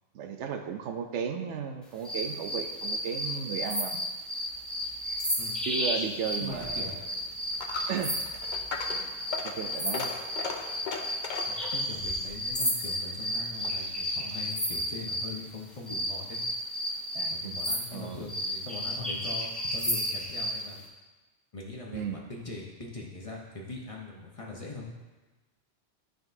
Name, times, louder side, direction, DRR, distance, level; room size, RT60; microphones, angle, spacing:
voice 1, 0.1-4.0 5.7-7.1 7.9-8.2 9.4-10.1 17.1-17.6 17.9-18.3 21.9-22.2, right 7 dB, 80° right, 6 dB, 0.9 m, -35 dB
sound 1, 2.0-15.3 15.9-20.6, equal, ahead, 0.9 m, -32 dB
Coin (dropping), 6.4-13.9, left 4 dB, 55° left, 0.6 m, -39 dB
voice 2, 6.4-7.0 11.5-16.4 17.3-20.9 21.5-24.9, left 3 dB, 30° left, -3 dB, 0.9 m, -41 dB
11.5 x 3.9 x 2.7 m, 1.2 s
omnidirectional pair, 1.2 m